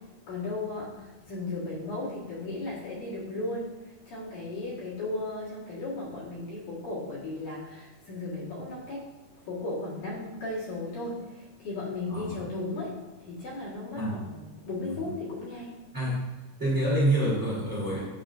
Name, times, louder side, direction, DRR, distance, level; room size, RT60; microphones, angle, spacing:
voice 1, 0.0-9.1 9.4-15.8, left 2 dB, 60° left, -7 dB, 3.0 m, -36 dB
voice 2, 12.1-12.4 13.9-14.2 14.9-15.1 15.9-16.2 16.6-18.0, right 1 dB, 25° right, -8 dB, 1.6 m, -27 dB
9.1 x 5.6 x 2.6 m, 1.1 s
omnidirectional pair, 4.5 m